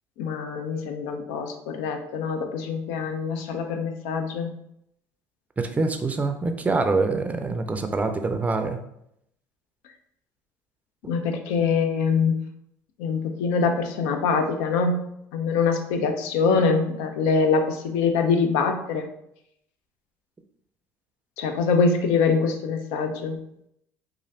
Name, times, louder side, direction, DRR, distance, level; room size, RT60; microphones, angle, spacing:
voice 1, 0.2-4.5 11.1-12.3 13.0-15.0 15.3-19.1 21.4-23.4, left 5 dB, 80° left, 6 dB, 0.4 m, -24 dB
voice 2, 5.6-8.8, right 3 dB, 20° right, 7 dB, 0.4 m, -25 dB
3.1 x 2.4 x 2.7 m, 0.76 s
hypercardioid pair, 70°, 8 cm